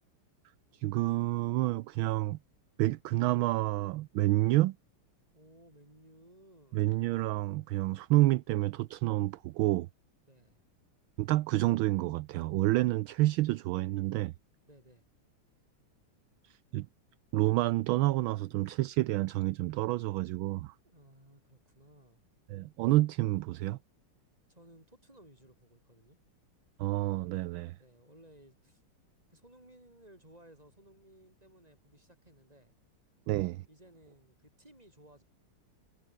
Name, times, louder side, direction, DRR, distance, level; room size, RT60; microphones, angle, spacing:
voice 1, 0.7-2.4 2.8-4.7 6.7-9.9 11.2-14.3 16.4-16.9 17.3-20.7 22.5-23.8 26.8-27.8 33.3-33.6, right 17 dB, 75° right, 1.3 m, -29 dB
voice 2, 5.3-6.9 10.2-10.7 14.7-15.1 20.8-22.2 24.5-26.2 27.7-28.8 29.3-32.7 33.7-35.2, right 1 dB, 15° right, 6.8 m, -59 dB
omnidirectional pair, 2.4 m